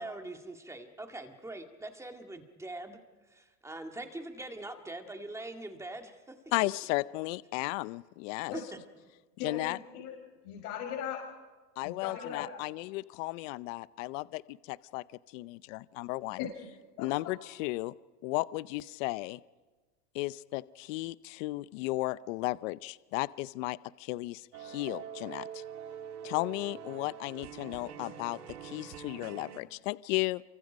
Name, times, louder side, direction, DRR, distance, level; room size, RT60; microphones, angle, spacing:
voice 1, 0.0-3.0 3.3-6.3 8.5-8.6, right 2 dB, 5° right, 4 dB, 2.0 m, -42 dB
voice 2, 6.5-8.6 9.4-9.8 11.8-15.0 15.3-16.5 17.0-17.9 18.2-19.4 20.1-25.6 26.2-30.4, left 20 dB, 55° left, 18 dB, 0.6 m, -34 dB
voice 3, 9.4-10.1 10.4-11.2 11.8-12.5 16.4-16.5 17.0-17.1, left 9 dB, 70° left, 0 dB, 6.1 m, -38 dB
sound 1, 24.5-29.6, right 8 dB, 75° right, 2.2 m, -44 dB
28.0 x 24.5 x 5.2 m, 1.3 s
supercardioid pair, 140°, 47 cm